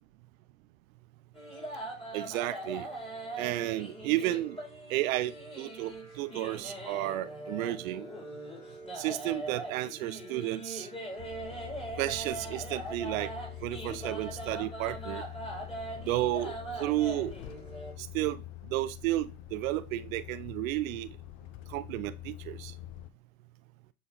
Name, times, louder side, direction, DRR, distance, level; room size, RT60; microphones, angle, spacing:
sound 1, 1.3-17.9, right 1 dB, 15° left, 3.9 m, -41 dB
voice 1, 2.1-2.9 3.4-4.6 4.9-8.1 9.0-10.9 12.0-13.3 13.6-15.2 16.1-17.4 18.0-18.4 18.7-21.1 21.7-22.7, right 16 dB, 65° right, 0.6 m, -32 dB
Truck, 11.2-23.1, left 15 dB, 55° left, 0.8 m, -45 dB
11.5 x 4.0 x 4.1 m
figure-of-eight pair, 70°, 44 cm